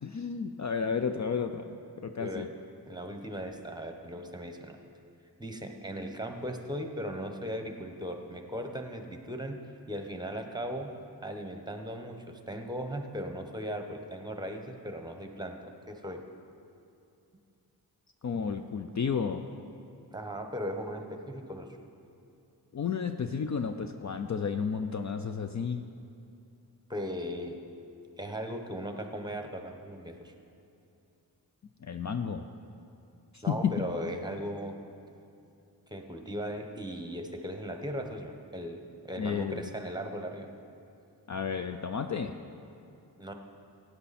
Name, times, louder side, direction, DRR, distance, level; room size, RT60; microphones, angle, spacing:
voice 1, 0.0-2.5 18.2-19.4 22.7-25.8 31.8-32.5 33.3-33.9 39.2-39.6 41.3-42.4, left 6 dB, 45° left, 7 dB, 0.5 m, -32 dB
voice 2, 2.9-4.8 5.4-9.6 9.9-10.9 11.2-15.6 15.9-16.2 20.1-21.7 26.9-27.6 28.2-30.3 33.4-34.7 35.9-40.5 43.2-43.3, equal, 10° right, 4 dB, 1.1 m, -37 dB
14.5 x 9.1 x 4.2 m, 2.6 s
cardioid pair, 60°, 40 cm